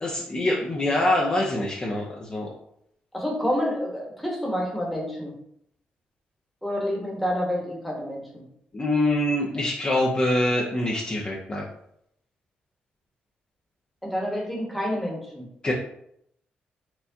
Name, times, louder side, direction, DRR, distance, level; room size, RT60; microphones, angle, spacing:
voice 1, 0.0-2.5 8.7-11.7 15.6-15.7, left 1 dB, 30° left, -3 dB, 0.6 m, -24 dB
voice 2, 3.1-5.3 6.6-8.4 14.0-15.5, equal, ahead, -2 dB, 1.1 m, -28 dB
4.4 x 2.3 x 2.7 m, 0.72 s
cardioid pair, 100°, 3 cm